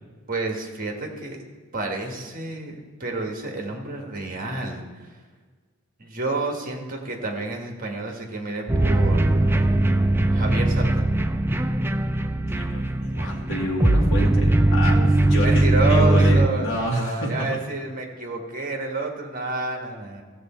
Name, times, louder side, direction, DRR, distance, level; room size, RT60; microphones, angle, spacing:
voice 1, 0.3-1.4 1.7-4.9 6.0-9.5 10.3-11.1 15.4-20.2, right 2 dB, 40° right, 2 dB, 1.5 m, -29 dB
sound 1, 8.7-16.5, right 1 dB, 10° right, 0.4 m, -20 dB
voice 2, 12.5-17.3, left 1 dB, 65° left, -1 dB, 2.1 m, -28 dB
15.5 x 7.3 x 4.4 m, 1.5 s
head